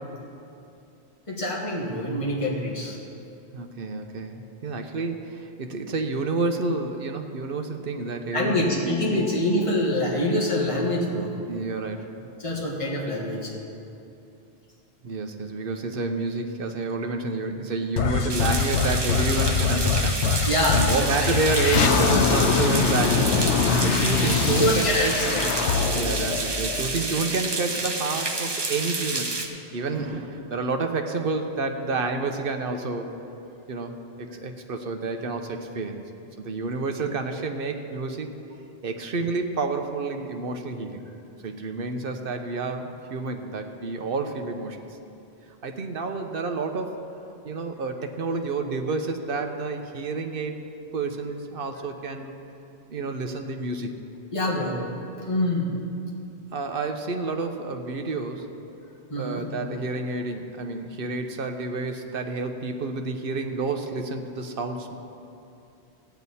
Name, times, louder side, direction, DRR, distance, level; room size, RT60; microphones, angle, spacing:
voice 1, 1.3-3.0 8.3-11.3 12.4-13.5 20.5-21.3 24.3-25.4 29.9-30.1 54.3-54.8 55.3-55.7 59.1-59.4, left 1 dB, 30° left, -3 dB, 1.7 m, -25 dB
voice 2, 3.5-9.3 11.5-12.1 15.0-20.5 20.7-23.4 23.8-25.1 25.9-29.3 29.7-33.1 33.7-36.0 36.4-38.3 38.8-41.0 41.4-44.8 45.6-47.0 47.4-50.5 50.9-52.3 52.9-54.0 56.5-58.5 59.2-65.0, right 3 dB, 60° right, 5 dB, 0.9 m, -29 dB
sound 1, 18.0-27.3, left 5 dB, 90° left, 1.0 m, -23 dB
sound 2, 18.3-29.5, right 3 dB, 25° right, 0.7 m, -29 dB
15.0 x 9.3 x 4.2 m, 2.8 s
omnidirectional pair, 1.1 m